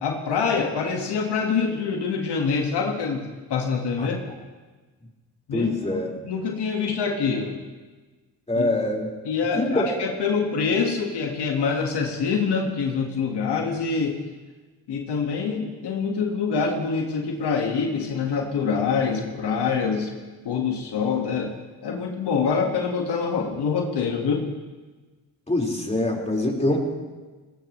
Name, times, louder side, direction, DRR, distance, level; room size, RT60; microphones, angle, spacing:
voice 1, 0.0-4.2 5.5-7.6 8.5-8.7 9.3-14.2 14.9-20.1 20.5-21.6 21.8-24.5, left 5 dB, 75° left, 1 dB, 1.9 m, -25 dB
voice 2, 5.5-6.1 8.5-9.1 9.6-9.9 25.5-26.8, left 1 dB, 15° left, -2 dB, 4.9 m, -24 dB
19.5 x 19.0 x 3.3 m, 1.3 s
supercardioid pair, 55°, 41 cm